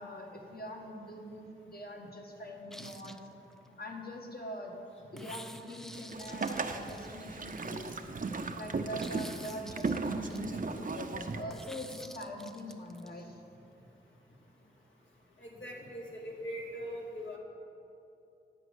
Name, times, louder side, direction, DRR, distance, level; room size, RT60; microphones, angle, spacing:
voice 1, 0.0-1.5 1.7-3.3 3.8-4.8 5.1-8.0 8.5-13.4, equal, 55° left, 0 dB, 1.5 m, -43 dB
sound 1, 2.7-3.7 5.2-7.5 9.0-10.4 11.5-13.1, equal, ahead, 0.4 m, -50 dB
sound 2, 5.9-8.6 8.9-10.1 10.4-10.5 10.8-10.9 11.1-11.3 11.5-11.6 11.9-12.0, right 3 dB, 70° right, 0.9 m, -55 dB
Boat Water vehicle, 6.1-11.4, right 4 dB, 45° right, 0.6 m, -36 dB
voice 2, 15.4-17.4, equal, 75° left, -3 dB, 2.2 m, -41 dB
10.5 x 5.2 x 8.1 m, 2.7 s
wide cardioid pair, 60°, 19 cm